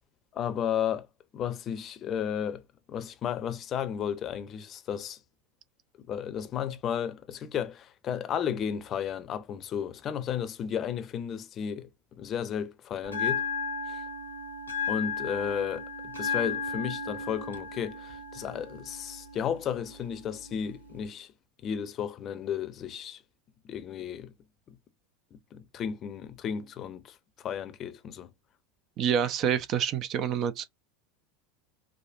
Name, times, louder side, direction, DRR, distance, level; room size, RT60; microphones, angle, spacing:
voice 1, 0.3-1.1 1.3-2.6 2.9-5.2 6.0-13.4 13.9-14.0 14.9-21.3 21.6-23.2 23.6-24.3 24.7-24.8 25.3-28.3, left 8 dB, 35° left, 0.6 m, -33 dB
Bell, 13.0-21.0, left 5 dB, 85° left, 0.8 m, -35 dB
voice 2, 29.0-30.6, right 8 dB, 40° right, 0.5 m, -27 dB
4.8 x 2.0 x 2.4 m
figure-of-eight pair, 80°, 0 cm